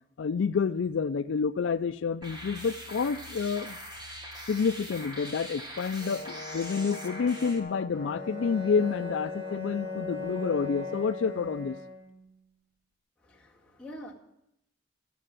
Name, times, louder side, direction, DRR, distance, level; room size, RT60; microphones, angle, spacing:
voice 1, 0.2-3.8 4.5-11.8, left 5 dB, 80° left, 13 dB, 0.4 m, -29 dB
sound 1, 2.2-7.6, equal, 25° right, 1.5 m, -42 dB
Brass instrument, 6.0-11.2, left 3 dB, 40° left, 0.6 m, -44 dB
Bowed string instrument, 7.9-12.3, left 4 dB, 65° right, 5.0 m, -38 dB
voice 2, 13.2-14.1, equal, 5° left, -5 dB, 1.9 m, -45 dB
13.0 x 7.6 x 7.5 m, 0.80 s
head